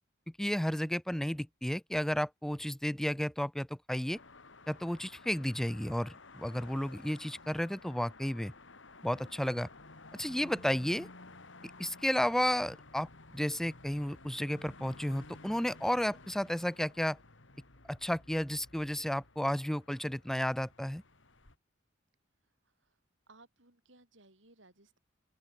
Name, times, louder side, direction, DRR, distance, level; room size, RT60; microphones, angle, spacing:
voice 1, 0.4-4.2 4.7-8.5 9.0-9.7 10.1-11.1 11.8-13.1 13.3-17.2 17.9-21.0, equal, ahead, 0.3 m, -32 dB
sound 1, 4.1-21.6, left 3 dB, 75° left, 3.0 m, -54 dB
voice 2, 22.6-23.0 23.3-25.0, right 2 dB, 80° right, 6.2 m, -61 dB
open air
head